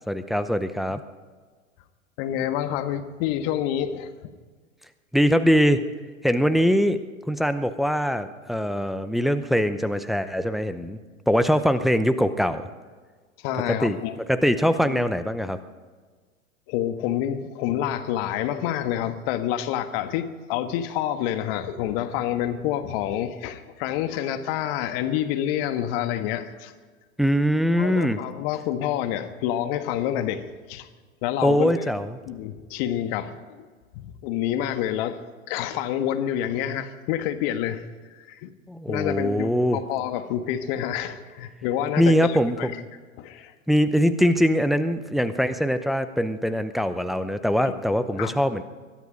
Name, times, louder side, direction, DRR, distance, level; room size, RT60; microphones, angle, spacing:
voice 1, 0.1-1.0 5.1-5.8 6.2-7.0 7.3-11.0 11.3-12.7 13.8-14.0 14.3-15.6 27.2-28.2 31.4-32.1 38.7-39.8 42.0-42.7 43.7-48.6, equal, ahead, 10 dB, 0.6 m, -22 dB
voice 2, 2.2-4.3 13.4-14.2 14.8-15.0 16.7-26.7 27.7-30.9 31.2-31.7 32.2-33.6 33.9-35.2 35.5-37.8 38.1-38.5 38.9-42.7 43.2-43.5 47.7-47.8 48.2-48.3, left 11 dB, 45° left, 9 dB, 1.5 m, -28 dB
21.5 x 12.0 x 5.2 m, 1.5 s
hypercardioid pair, 105°, 41 cm